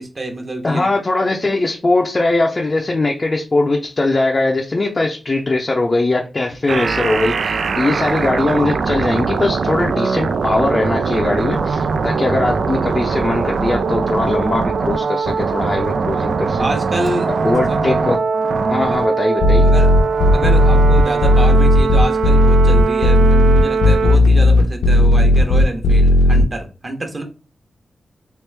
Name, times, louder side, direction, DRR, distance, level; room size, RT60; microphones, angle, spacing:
voice 1, 0.0-0.9 16.6-17.3 17.7-17.8 19.6-19.9 20.3-27.2, right 1 dB, 35° right, 4 dB, 1.0 m, -26 dB
voice 2, 0.6-16.6 17.4-18.2 18.7-19.7, left 2 dB, 35° left, 0 dB, 0.5 m, -20 dB
sound 1, 6.7-24.2, right 5 dB, 75° right, 0.3 m, -21 dB
Hammer, 17.1-23.3, right 2 dB, 60° right, 0.9 m, -28 dB
sound 2, 19.4-26.4, left 1 dB, 85° left, 0.8 m, -12 dB
3.1 x 3.1 x 3.3 m, 0.33 s
cardioid pair, 85°, 0 cm